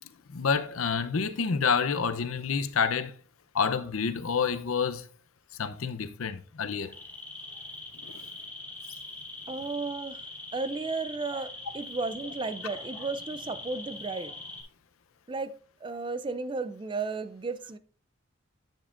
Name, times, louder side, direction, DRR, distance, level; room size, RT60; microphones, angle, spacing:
voice 1, 0.3-3.1 3.5-5.1 5.6-6.9 8.0-8.3, left 6 dB, 85° left, 0.7 m, -28 dB
sound 1, 6.8-14.6, left 2 dB, 10° left, 2.8 m, -42 dB
voice 2, 9.5-10.2 10.5-14.3 15.3-15.5 15.8-17.8, right 3 dB, 25° right, 0.4 m, -34 dB
10.5 x 7.4 x 2.5 m
head